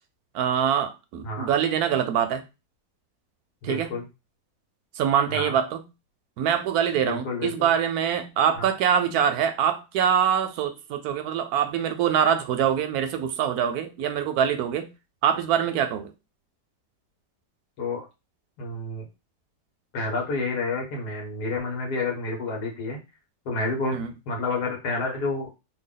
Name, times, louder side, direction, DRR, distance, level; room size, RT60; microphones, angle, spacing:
voice 1, 0.3-2.4 3.6-4.0 5.0-5.8 6.4-14.9 15.2-16.1 23.9-24.1, right 8 dB, 70° right, 1.0 m, -24 dB
voice 2, 3.6-4.0 5.3-5.6 7.0-7.7 8.6-8.7 17.8-18.1 18.6-19.1 19.9-23.0 23.5-25.5, left 3 dB, 65° left, 1.7 m, -29 dB
3.4 x 2.2 x 3.7 m
omnidirectional pair, 1.9 m